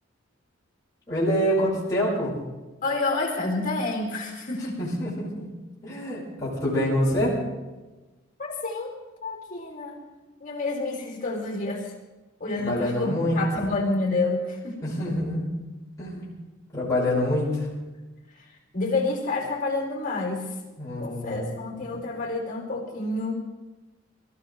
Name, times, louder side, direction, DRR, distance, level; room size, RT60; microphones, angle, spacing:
voice 1, 1.1-2.3 4.8-5.5 5.8-7.4 12.6-13.4 14.8-15.5 16.0-16.4 16.7-17.7 20.8-21.8, equal, 15° left, -9 dB, 5.5 m, -26 dB
voice 2, 2.8-4.9 8.4-8.9 9.2-10.0 10.4-11.9 12.4-14.8 18.4-18.5 18.7-20.5 21.0-23.3, left 3 dB, 40° left, 1 dB, 3.9 m, -29 dB
25.0 x 14.5 x 3.4 m, 1.2 s
head